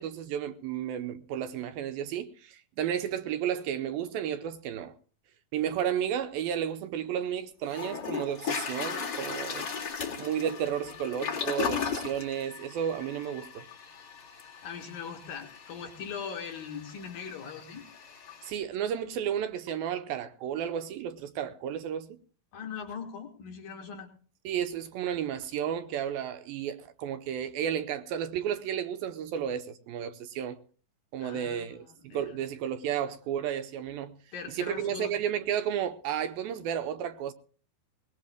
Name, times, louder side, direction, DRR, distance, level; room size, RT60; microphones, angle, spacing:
voice 1, 0.0-4.9 5.5-9.7 10.2-13.7 18.4-22.2 24.4-30.6 31.1-34.2 34.5-37.3, right 9 dB, 75° right, 2.4 m, -32 dB
Toilet flush, 7.2-7.3 7.7-18.5, left 6 dB, 35° left, 2.0 m, -37 dB
voice 2, 14.6-17.9 22.5-24.1 31.2-32.3 34.3-35.2, left 6 dB, 65° left, 3.2 m, -40 dB
21.5 x 20.0 x 2.2 m
omnidirectional pair, 4.5 m